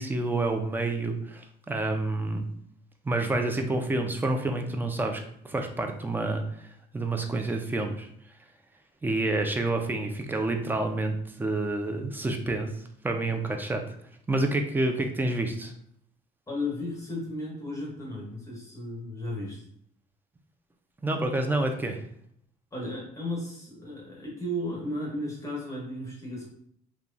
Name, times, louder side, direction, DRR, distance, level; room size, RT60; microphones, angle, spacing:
voice 1, 0.0-2.4 3.0-6.7 6.9-8.1 9.0-12.7 13.0-13.8 14.3-15.7 21.0-22.0, right 2 dB, 10° right, 4 dB, 0.4 m, -28 dB
voice 2, 16.5-19.6 22.7-26.5, left 1 dB, 20° left, -3 dB, 1.1 m, -34 dB
3.0 x 2.2 x 2.4 m, 0.68 s
cardioid pair, 110°, 17 cm